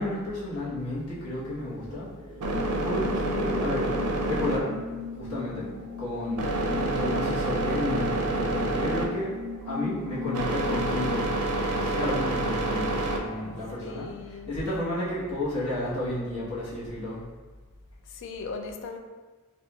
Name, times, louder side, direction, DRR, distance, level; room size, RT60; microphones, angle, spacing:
voice 1, 0.0-2.1 2.8-4.8 5.2-5.7 6.0-9.3 9.7-14.1 14.5-17.2, left 1 dB, 85° left, -8 dB, 1.1 m, -32 dB
sound 1, 0.8-13.8, right 2 dB, 90° right, 0.5 m, -29 dB
sound 2, 2.5-11.4, left 4 dB, 35° right, 0.7 m, -37 dB
voice 2, 6.3-6.7 13.8-14.6 18.1-19.0, left 4 dB, 55° left, 5 dB, 0.4 m, -39 dB
4.4 x 2.5 x 2.3 m, 1.4 s
head